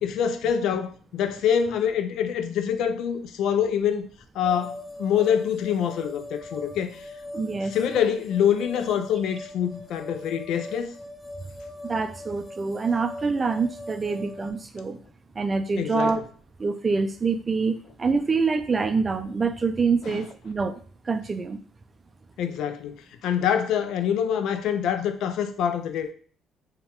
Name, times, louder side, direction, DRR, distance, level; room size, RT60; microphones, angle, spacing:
voice 1, 0.0-4.1 4.4-7.0 7.6-10.9 15.8-16.2 20.0-20.2 22.4-26.1, left 8 dB, 75° left, 0.3 m, -25 dB
sound 1, 4.4-14.5, left 1 dB, 20° left, 0.8 m, -41 dB
voice 2, 7.3-7.7 11.8-15.0 15.4-16.2 16.6-20.7 21.1-21.6, right 4 dB, 30° right, 0.3 m, -26 dB
2.8 x 2.2 x 2.9 m
supercardioid pair, 75°, 0 cm